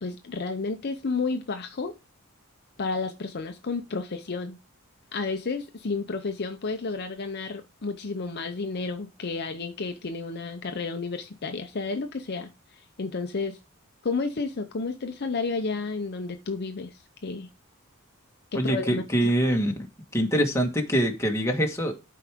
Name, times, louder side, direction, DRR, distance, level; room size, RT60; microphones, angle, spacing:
voice 1, 0.0-2.0 2.8-4.6 5.1-13.6 14.0-17.5 18.5-19.3, left 4 dB, 50° left, 0.6 m, -31 dB
voice 2, 18.5-19.7 20.1-21.9, equal, 15° left, 1.4 m, -24 dB
12.0 x 4.7 x 3.5 m
head